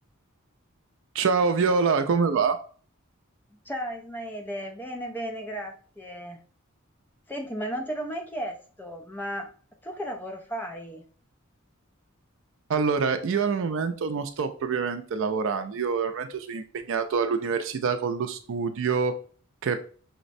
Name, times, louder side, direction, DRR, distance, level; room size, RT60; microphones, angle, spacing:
voice 1, 1.1-2.6 12.7-19.2 19.6-19.8, right 5 dB, 65° right, 8 dB, 0.4 m, -26 dB
voice 2, 3.7-6.4 7.3-9.5 9.8-11.0, equal, 10° left, 3 dB, 0.4 m, -34 dB
5.7 x 2.1 x 2.5 m, 0.42 s
head